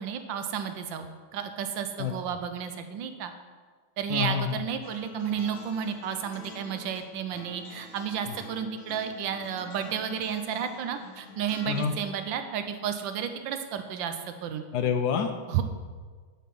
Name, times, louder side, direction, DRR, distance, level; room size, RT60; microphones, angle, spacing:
voice 1, 0.0-3.3 4.0-14.6 15.5-15.6, right 8 dB, 70° right, 8 dB, 1.3 m, -32 dB
voice 2, 4.1-4.6 8.3-8.4 11.7-11.9 14.7-15.3, left 7 dB, 70° left, 6 dB, 0.9 m, -27 dB
sound 1, 4.8-12.0, left 3 dB, 90° left, 1.9 m, -47 dB
11.5 x 4.3 x 5.4 m, 1.5 s
omnidirectional pair, 2.3 m